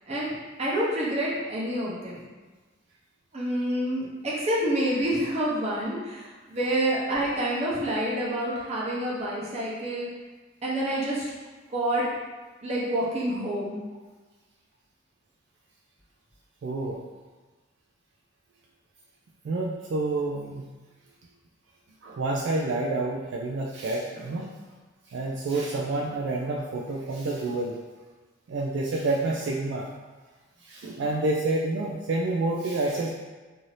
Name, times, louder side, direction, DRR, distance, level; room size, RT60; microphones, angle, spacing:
voice 1, 0.6-2.2 3.3-10.1 10.6-11.2 11.7-12.0 12.6-13.8, right 1 dB, 35° right, -6 dB, 0.8 m, -28 dB
voice 2, 16.6-17.0 19.4-20.6 22.0-24.5 25.1-27.8 28.5-29.8 30.6-33.1, right 2 dB, 65° right, -2 dB, 0.3 m, -28 dB
2.7 x 2.5 x 3.2 m, 1.3 s
head